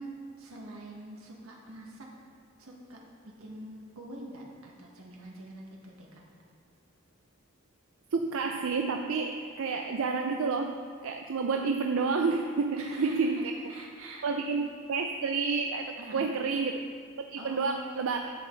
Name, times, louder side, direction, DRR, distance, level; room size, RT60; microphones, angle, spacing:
voice 1, 0.0-2.1 2.6-3.0 3.4-6.2 12.8-13.4 13.7-14.3 16.0-16.4 17.4-18.1, right 1 dB, 90° right, -2 dB, 1.8 m, -44 dB
voice 2, 8.1-13.5 14.2-16.8 17.3-18.3, right 4 dB, 70° right, 4 dB, 0.4 m, -30 dB
10.5 x 8.0 x 4.0 m, 2.1 s
head